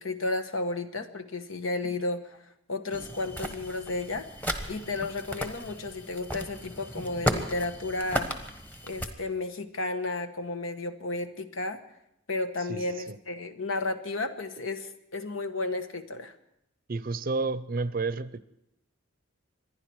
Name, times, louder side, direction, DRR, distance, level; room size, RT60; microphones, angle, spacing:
voice 1, 0.0-4.3 4.7-8.3 8.9-11.8 12.3-16.3, left 2 dB, 85° left, 8 dB, 1.3 m, -33 dB
sound 1, 2.9-9.1, equal, 10° left, 1.2 m, -35 dB
voice 2, 12.7-13.2 16.9-18.4, right 3 dB, 45° right, 15 dB, 0.6 m, -31 dB
26.5 x 10.5 x 4.7 m, 0.81 s
head